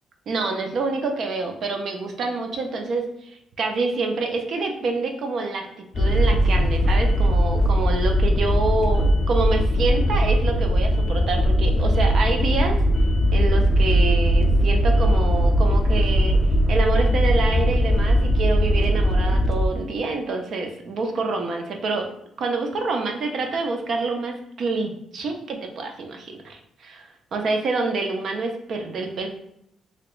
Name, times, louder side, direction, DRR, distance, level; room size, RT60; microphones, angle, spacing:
voice 1, 0.3-12.8 13.3-22.1 22.4-29.3, right 3 dB, 60° right, 4 dB, 0.6 m, -27 dB
sound 1, 5.9-19.7, equal, 40° left, 0.3 m, -19 dB
3.0 x 2.8 x 3.1 m, 0.78 s
cardioid pair, 110°, 0 cm